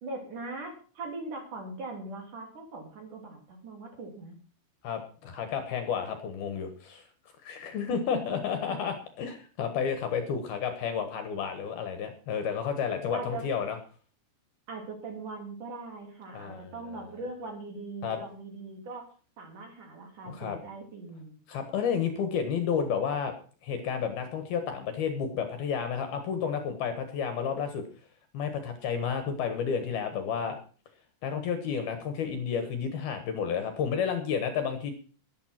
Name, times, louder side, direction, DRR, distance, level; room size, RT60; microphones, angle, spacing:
voice 1, 0.0-4.3 7.9-8.8 13.1-13.5 14.7-19.1 19.4-21.4, right 3 dB, 45° right, 2 dB, 4.5 m, -40 dB
voice 2, 4.8-7.0 7.4-13.8 16.3-16.7 18.0-18.2 20.3-20.6 21.5-23.3 23.6-27.8 28.3-30.6 31.2-34.9, left 7 dB, 65° left, 8 dB, 3.0 m, -31 dB
12.5 x 12.0 x 5.9 m, 0.39 s
omnidirectional pair, 5.4 m